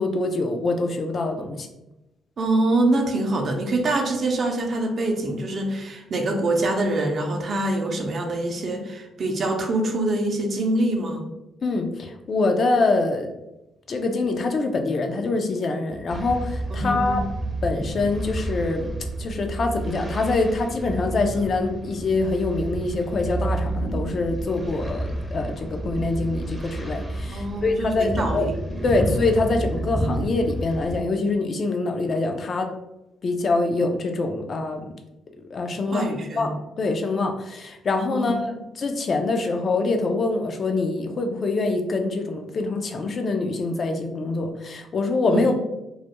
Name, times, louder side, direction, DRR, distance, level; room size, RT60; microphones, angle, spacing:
voice 1, 0.0-1.7 11.6-13.3 13.9-17.3 17.6-18.9 19.2-28.5 28.8-32.7 33.2-34.9 35.5-36.1 36.4-45.5, left 3 dB, 50° left, 4 dB, 0.4 m, -25 dB
voice 2, 2.4-11.3 16.7-17.3 27.3-28.9 35.9-36.5 38.1-38.4 45.3-45.5, right 2 dB, 55° right, 2 dB, 0.5 m, -25 dB
sound 1, 16.1-31.0, right 1 dB, 5° right, 0.5 m, -30 dB
2.3 x 2.1 x 2.9 m, 0.92 s
supercardioid pair, 70°, 0 cm